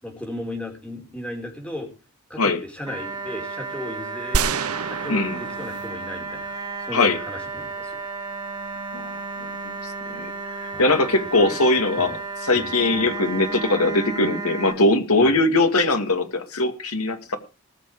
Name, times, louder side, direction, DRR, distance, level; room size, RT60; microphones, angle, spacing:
voice 1, 0.0-1.9 2.3-4.6 4.9-6.5 6.9-8.0 10.7-11.0 11.3-11.6 12.0-12.2 12.5-13.1 15.2-15.4, left 1 dB, 5° left, 2 dB, 4.9 m, -36 dB
sound 1, 2.9-14.7, right 4 dB, 20° right, 5.3 m, -33 dB
sound 2, 4.3-6.7, right 5 dB, 80° right, 0.8 m, -28 dB
voice 2, 5.1-5.4 6.9-7.2 8.9-9.1 9.4-10.3 10.6-12.2 12.5-17.4, left 2 dB, 85° left, 6 dB, 2.4 m, -21 dB
19.5 x 7.5 x 4.9 m, 0.33 s
head